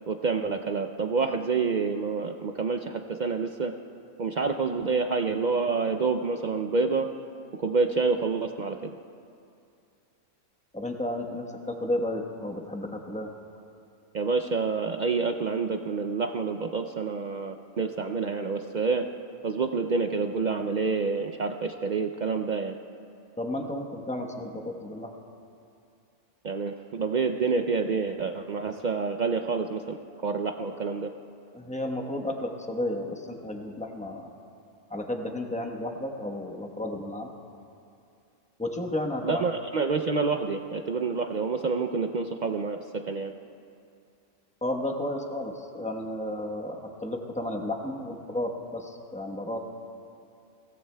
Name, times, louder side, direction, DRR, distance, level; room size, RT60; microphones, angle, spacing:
voice 1, 0.1-3.7 4.2-7.1 7.6-8.9 14.1-19.0 19.4-22.8 26.4-30.0 30.2-31.1 39.2-43.3, right 4 dB, 60° right, 5 dB, 0.4 m, -28 dB
voice 2, 10.7-13.3 23.4-25.1 31.5-34.3 34.9-37.3 38.6-39.5 44.6-49.6, left 1 dB, 5° left, 2 dB, 0.9 m, -32 dB
22.0 x 17.0 x 2.2 m, 2.5 s
omnidirectional pair, 1.3 m